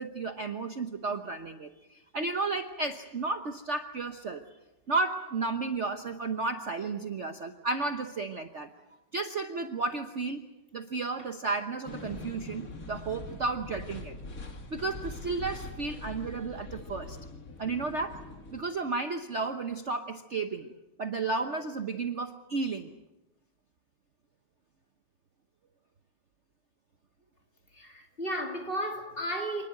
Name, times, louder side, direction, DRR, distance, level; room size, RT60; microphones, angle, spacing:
voice 1, 0.0-4.4 4.9-8.7 9.1-10.4 10.7-14.2 14.7-17.2 17.6-18.2 18.5-20.7 21.0-22.9, right 3 dB, 45° right, 1.2 m, -33 dB
sound 1, 11.9-18.6, left 2 dB, 45° left, 2.5 m, -43 dB
voice 2, 27.8-29.7, equal, 30° left, 3.0 m, -34 dB
27.0 x 20.0 x 7.8 m
omnidirectional pair, 2.1 m